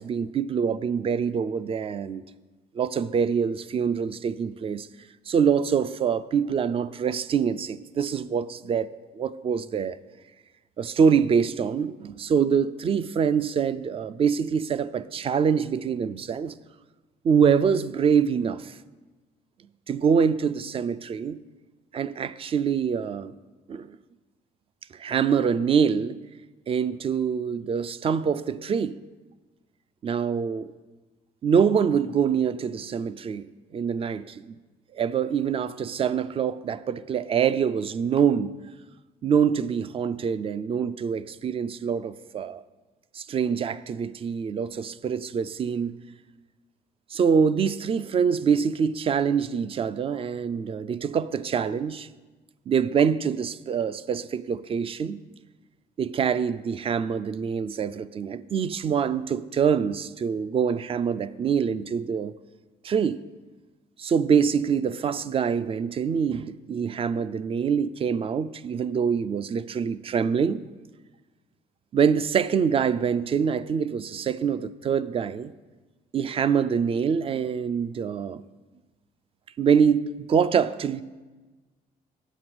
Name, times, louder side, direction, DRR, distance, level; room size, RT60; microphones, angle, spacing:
voice 1, 0.0-2.2 2.7-4.9 5.3-10.0 10.8-16.6 17.2-18.7 19.9-21.4 21.9-23.4 23.7-24.0 24.9-26.2 26.7-29.0 30.0-30.7 31.4-34.4 34.9-38.5 39.2-42.6 43.1-45.9 47.1-52.1 52.7-55.2 56.0-62.3 62.8-63.2 64.0-70.6 71.9-75.5 76.1-78.4 79.6-81.0, right 7 dB, 35° right, 0.4 m, -25 dB
8.1 x 7.0 x 6.0 m
cardioid pair, 110°, 17 cm